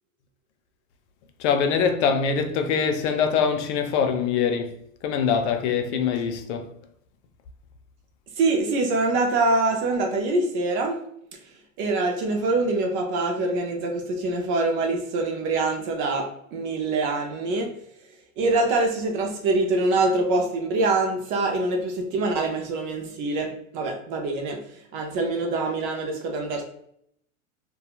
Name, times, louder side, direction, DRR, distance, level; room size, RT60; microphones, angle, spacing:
voice 1, 1.4-4.7 5.0-6.7, left 6 dB, 55° left, 0.5 m, -23 dB
voice 2, 8.4-11.0 11.8-17.7 18.4-24.6 24.9-26.6, right 2 dB, 30° right, 0.4 m, -24 dB
2.8 x 2.3 x 2.3 m
hypercardioid pair, 110°, 41 cm